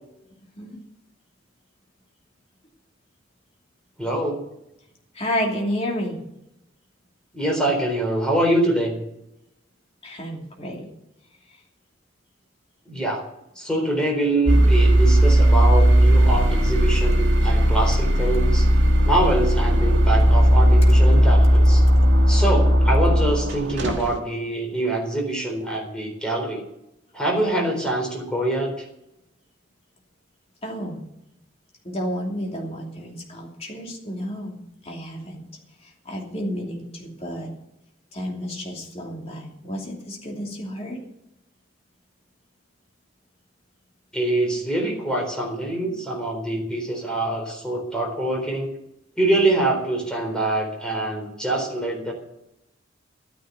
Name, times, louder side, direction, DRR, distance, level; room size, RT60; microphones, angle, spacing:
voice 1, 4.0-4.4 7.3-9.0 12.9-13.2 13.6-18.7 19.1-21.8 22.3-26.6 27.1-28.7 44.1-48.7 49.2-52.1, right 1 dB, 5° left, 0 dB, 3.9 m, -24 dB
voice 2, 5.1-6.2 10.0-10.9 30.6-31.0 31.8-35.5 35.8-37.5 38.1-41.0, equal, 35° left, -1 dB, 2.8 m, -31 dB
sound 1, 14.5-24.2, equal, 65° right, 1.7 m, -16 dB
13.0 x 9.6 x 6.8 m, 0.84 s
head